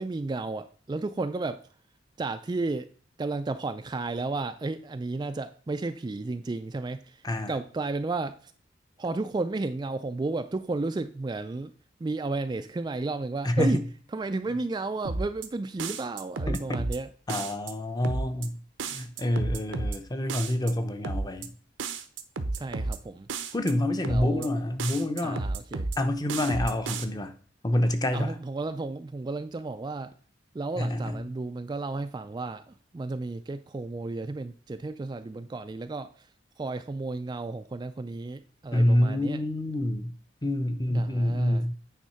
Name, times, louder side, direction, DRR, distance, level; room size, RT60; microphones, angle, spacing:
voice 1, 0.0-1.6 2.2-2.9 3.2-8.5 9.0-11.7 12.0-13.8 14.1-17.1 22.5-23.3 24.1-24.5 25.2-25.9 28.1-30.1 30.5-36.3 36.6-39.4 40.9-41.6, right 3 dB, 20° right, 0.3 m, -33 dB
voice 2, 7.2-7.6 13.4-13.8 16.5-16.9 17.3-21.5 23.5-25.5 26.0-27.3 27.6-28.4 30.8-31.2 38.7-40.1 40.4-41.7, left 1 dB, 20° left, 0.7 m, -27 dB
sound 1, 15.0-15.5 15.8-17.0 17.3-17.7 18.0-18.5 18.8-20.0 20.3-20.7 21.0-21.5 21.8-23.0 23.3-23.7 24.0-24.5 24.8-26.0 26.3-27.0, right 3 dB, 85° right, 0.8 m, -32 dB
9.2 x 3.6 x 5.6 m
head